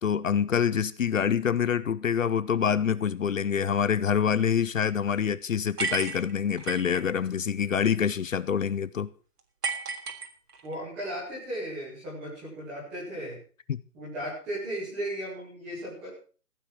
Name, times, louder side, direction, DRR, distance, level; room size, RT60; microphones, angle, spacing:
voice 1, 0.0-9.1 13.7-13.8, left 7 dB, 55° left, 0.7 m, -26 dB
sound 1, 5.8-7.0 9.6-10.8, right 4 dB, 80° right, 3.3 m, -33 dB
voice 2, 10.6-13.4 13.9-16.1, right 1 dB, ahead, 0.9 m, -36 dB
15.5 x 9.4 x 5.8 m
hypercardioid pair, 180°, 46 cm